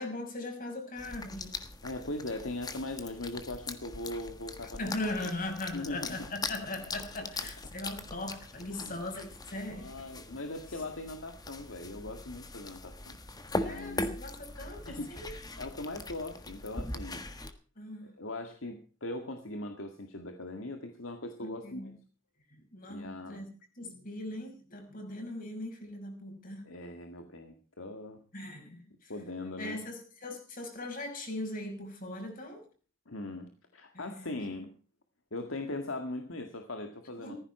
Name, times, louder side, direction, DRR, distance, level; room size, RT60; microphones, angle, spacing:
voice 1, 0.0-1.6 4.8-9.9 13.6-15.4 17.8-18.1 21.4-21.9 22.5-23.5 23.8-26.7 28.3-29.1 29.6-32.6 33.9-34.3 37.2-37.4, left 2 dB, 45° left, 4 dB, 5.7 m, -39 dB
sound 1, 1.0-17.5, left 2 dB, 20° left, 1.5 m, -41 dB
voice 2, 1.8-5.3 5.7-6.3 8.7-8.9 9.5-13.2 13.5-14.1 14.9-15.1 15.6-17.2 18.0-21.9 22.9-23.5 26.6-28.2 29.1-29.8 33.1-34.8 35.3-37.3, left 2 dB, 90° left, 5 dB, 1.9 m, -40 dB
15.5 x 14.5 x 4.4 m, 0.38 s
head